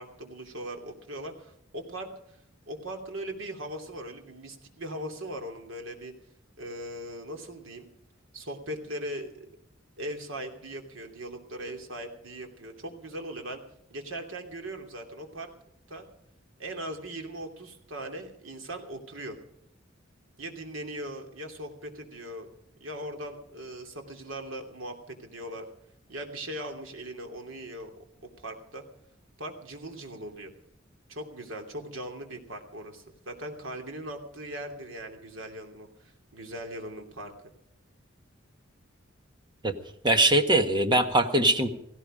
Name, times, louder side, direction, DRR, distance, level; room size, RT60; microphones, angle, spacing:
voice 1, 0.0-2.4 2.7-6.1 6.6-7.9 8.3-9.5 10.0-13.6 13.9-15.5 15.9-16.1 16.6-19.4 20.4-22.5 22.8-25.7 26.1-27.9 28.4-28.8 29.4-30.5 31.1-37.3, right 1 dB, 75° right, 4 dB, 2.9 m, -39 dB
voice 2, 40.0-41.7, right 1 dB, 25° right, 7 dB, 1.5 m, -22 dB
17.0 x 16.5 x 5.1 m, 0.77 s
head